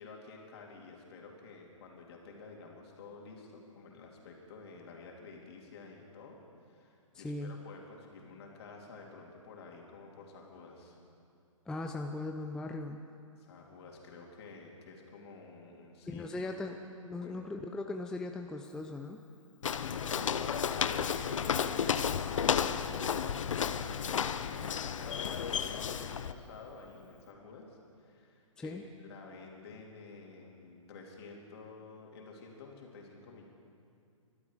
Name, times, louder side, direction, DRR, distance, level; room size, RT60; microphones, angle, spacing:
voice 1, 0.0-6.4 6.7-11.0 13.4-16.5 17.2-17.5 19.7-33.5, left 4 dB, 50° left, 0 dB, 3.2 m, -50 dB
voice 2, 7.1-7.6 11.7-13.0 16.1-16.8 17.0-19.2 28.6-28.8, left 2 dB, 5° left, 4 dB, 0.5 m, -39 dB
Walk footsteps, 19.6-26.3, left 7 dB, 70° left, 0.7 m, -32 dB
24.0 x 12.0 x 4.9 m, 2.4 s
hypercardioid pair, 130°, 17 cm